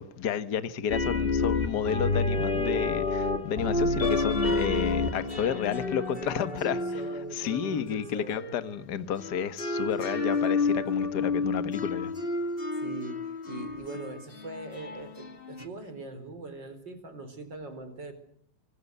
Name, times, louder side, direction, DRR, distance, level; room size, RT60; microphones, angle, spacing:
voice 1, 0.0-7.0 7.3-12.1, left 8 dB, 45° left, 1.4 m, -31 dB
sound 1, 0.9-8.7 9.2-15.6, left 3 dB, 20° left, 2.2 m, -30 dB
voice 2, 6.1-8.5 12.8-18.1, right 2 dB, 35° right, 5.0 m, -42 dB
27.0 x 24.5 x 8.1 m
omnidirectional pair, 3.6 m